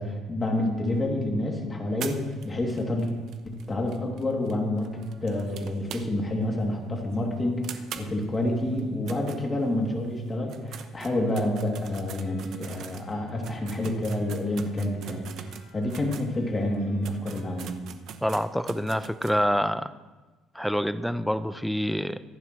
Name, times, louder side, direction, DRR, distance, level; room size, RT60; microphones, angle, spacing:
voice 1, 0.0-3.1 3.4-15.3 15.7-17.7, left 1 dB, 20° left, 0 dB, 2.7 m, -28 dB
sound 1, 2.0-6.4 6.7-6.8 7.1-7.2 7.6-10.0 10.4-16.3 16.7-16.8 17.0-19.4, right 8 dB, 60° right, 0.8 m, -43 dB
sound 2, 12.2-17.7, left 3 dB, 70° left, 5.1 m, -50 dB
voice 2, 18.2-19.9 20.5-22.2, equal, ahead, 12 dB, 0.5 m, -26 dB
24.5 x 11.0 x 3.2 m, 1.2 s
cardioid pair, 140°, 0 cm